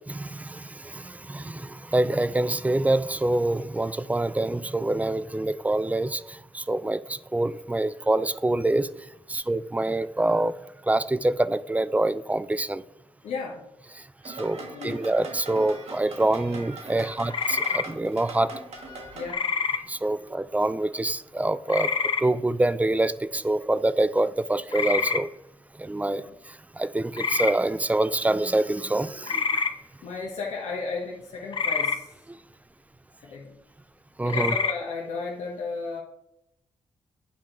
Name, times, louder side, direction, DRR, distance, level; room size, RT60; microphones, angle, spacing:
voice 1, 0.1-8.9 9.3-10.6 10.8-12.8 14.0-18.5 19.9-21.9 22.2-25.3 25.8-29.7 32.3-32.4 34.2-34.6, right 2 dB, 10° right, 0.3 m, -26 dB
voice 2, 13.2-13.6 14.5-15.1 19.1-19.5 26.1-26.3 30.0-32.1 33.2-33.6 34.2-36.0, left 4 dB, 80° left, 1.0 m, -34 dB
sound 1, 14.2-19.3, right 2 dB, 60° right, 1.3 m, -41 dB
sound 2, 17.3-17.8 19.3-19.8 21.7-22.2 24.7-25.2 27.2-27.5 29.2-29.7 31.5-32.0 34.3-34.7, left 5 dB, 45° left, 0.6 m, -26 dB
8.6 x 4.5 x 3.8 m
cardioid pair, 65°, 12 cm